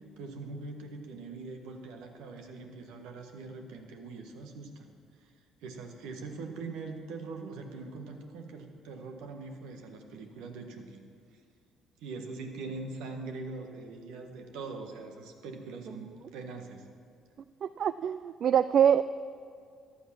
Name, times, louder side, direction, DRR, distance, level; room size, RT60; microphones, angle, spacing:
voice 1, 0.2-4.9 5.2-5.3 5.6-11.0 11.3-11.4 12.0-16.9, right 3 dB, 75° right, 4 dB, 1.5 m, -42 dB
voice 2, 17.6-19.0, right 9 dB, 55° right, 15 dB, 0.3 m, -24 dB
14.0 x 10.5 x 6.0 m, 2.3 s
hypercardioid pair, 50°, 0 cm